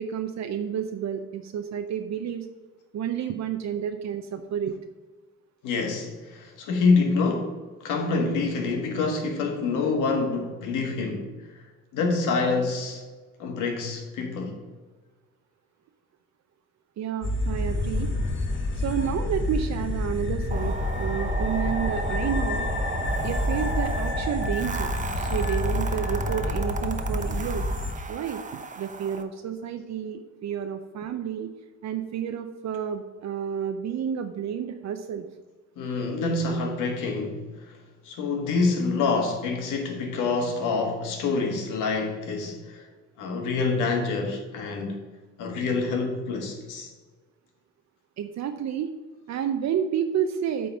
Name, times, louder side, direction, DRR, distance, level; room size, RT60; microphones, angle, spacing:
voice 1, 0.0-2.5 2.9-4.8 17.0-18.1 18.7-22.7 23.2-24.9 25.2-27.7 28.1-28.4 28.8-31.5 31.8-35.3 48.2-48.9 49.3-50.7, right 8 dB, 65° right, 0.6 m, -30 dB
voice 2, 5.6-11.3 11.5-11.6 11.9-13.0 13.4-14.6 35.8-37.8 38.0-42.8 43.2-45.0 45.4-46.9, left 4 dB, 90° left, 1.6 m, -26 dB
sound 1, 17.2-27.9, left 2 dB, 40° left, 1.2 m, -28 dB
sound 2, 20.5-29.2, right 4 dB, 25° right, 0.8 m, -34 dB
8.4 x 3.9 x 7.0 m
cardioid pair, 90°, 30 cm